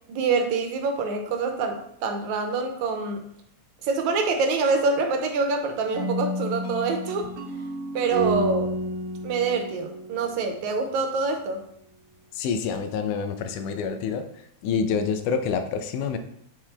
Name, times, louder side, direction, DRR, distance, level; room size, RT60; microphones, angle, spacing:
voice 1, 0.1-3.2 3.8-7.3 7.9-8.7 9.2-11.6, right 4 dB, 75° right, 4 dB, 2.0 m, -26 dB
sound 1, 5.9-10.8, equal, 60° right, 1.7 m, -30 dB
voice 2, 12.3-14.3 14.6-16.2, left 6 dB, 85° left, 8 dB, 2.2 m, -27 dB
7.4 x 4.7 x 3.3 m, 0.71 s
omnidirectional pair, 3.5 m